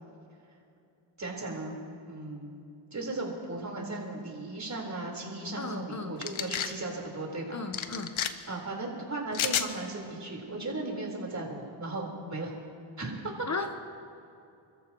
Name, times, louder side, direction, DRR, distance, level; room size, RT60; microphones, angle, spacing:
voice 1, 1.2-1.8 2.1-2.6 2.9-7.6 8.5-12.5 13.0-13.5, right 2 dB, 35° right, -1 dB, 4.5 m, -36 dB
voice 2, 5.6-6.1 7.5-8.1 13.5-13.7, left 3 dB, 35° left, 5 dB, 1.1 m, -35 dB
sound 1, 6.2-6.7 7.7-8.3 9.3-9.7, left 9 dB, 75° left, 1.0 m, -30 dB
29.5 x 14.0 x 3.1 m, 2.6 s
cardioid pair, 80°, 48 cm